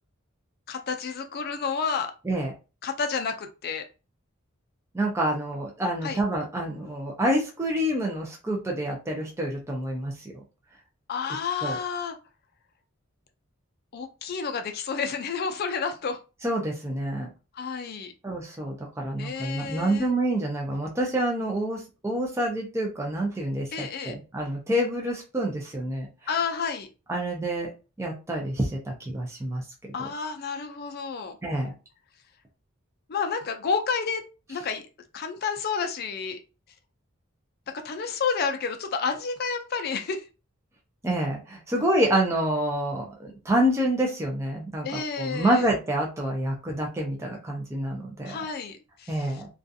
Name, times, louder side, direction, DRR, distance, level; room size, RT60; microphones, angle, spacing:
voice 1, 0.7-2.1 2.8-3.8 6.0-6.2 11.1-12.2 13.9-16.2 17.5-18.1 19.2-20.2 23.7-24.1 26.3-26.9 29.9-31.4 33.1-34.2 34.5-34.8 35.1-36.4 37.7-40.2 44.8-45.6 48.3-49.4, left 5 dB, 45° left, 6 dB, 0.4 m, -30 dB
voice 2, 4.9-10.3 11.6-11.8 16.4-17.3 18.2-26.1 27.1-27.7 28.0-29.6 31.4-31.7 41.0-48.4 49.1-49.5, right 1 dB, 15° right, -1 dB, 0.4 m, -27 dB
2.4 x 2.3 x 2.6 m, 0.31 s
head